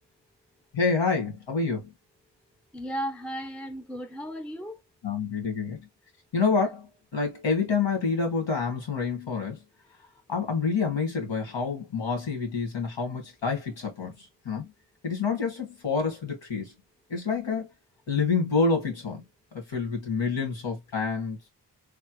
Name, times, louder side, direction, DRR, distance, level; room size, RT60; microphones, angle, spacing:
voice 1, 0.7-1.9 5.0-5.8 6.3-6.9 7.1-9.6 10.3-14.1 14.4-14.7 15.0-16.7 17.1-17.7 18.1-19.2 19.5-21.4, left 4 dB, 80° left, 1.6 m, -27 dB
voice 2, 2.7-4.8, equal, 5° left, 0.5 m, -35 dB
3.3 x 2.1 x 2.9 m
wide cardioid pair, 80°, 44 cm